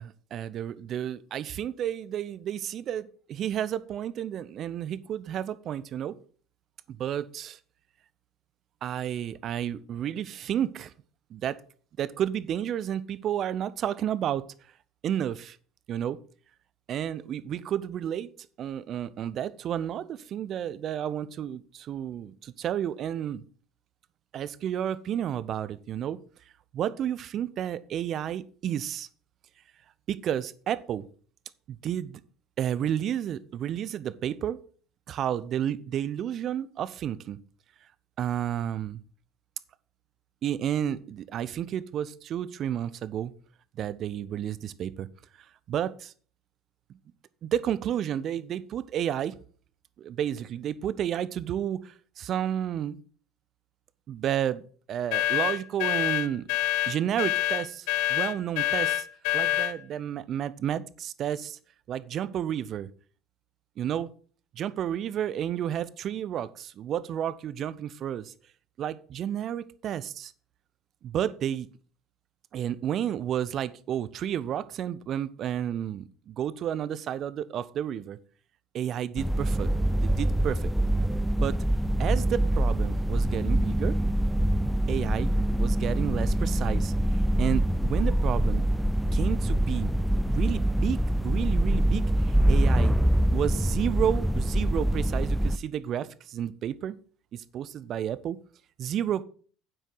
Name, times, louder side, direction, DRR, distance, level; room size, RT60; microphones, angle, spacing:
voice 1, 0.0-6.1 6.9-7.6 8.8-10.9 11.3-11.6 12.0-14.4 15.0-15.6 15.9-16.2 16.9-18.3 18.6-23.4 24.3-26.2 26.7-29.1 30.1-31.1 31.7-32.2 32.6-34.6 35.1-37.4 38.2-39.0 40.4-43.3 43.8-45.1 45.7-46.1 47.4-49.4 50.0-53.0 54.1-54.6 54.9-56.4 56.9-59.1 59.3-61.6 61.9-62.9 63.8-64.1 64.5-68.3 68.8-70.3 71.0-71.7 72.5-78.2 78.7-80.7 81.4-81.6 82.0-84.0 84.9-88.7 89.1-89.9 90.3-93.0 93.3-97.0 97.3-98.4 98.8-99.2, right 10 dB, 45° right, 17 dB, 0.6 m, -31 dB
sound 1, 55.1-59.8, left 14 dB, 60° left, 0.5 m, -26 dB
sound 2, 79.2-95.6, right 1 dB, ahead, 0.4 m, -25 dB
9.0 x 7.8 x 4.0 m, 0.44 s
figure-of-eight pair, 65°, 0 cm